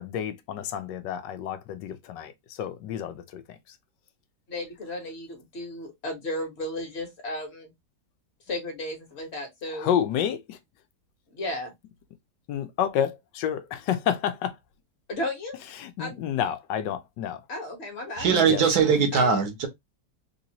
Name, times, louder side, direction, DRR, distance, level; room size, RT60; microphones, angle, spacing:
voice 1, 0.0-2.3 2.6-3.4 9.7-10.6 12.5-14.5 15.8-17.4 18.5-18.6, left 9 dB, 85° left, 1.3 m, -29 dB
voice 2, 4.5-7.7 8.5-9.9 11.3-11.7 15.1-15.6 16.0-16.2 17.5-18.7 19.1-19.4, left 1 dB, 40° left, 1.4 m, -34 dB
voice 3, 18.2-19.7, right 6 dB, 65° right, 1.3 m, -21 dB
3.5 x 2.7 x 2.8 m
omnidirectional pair, 1.9 m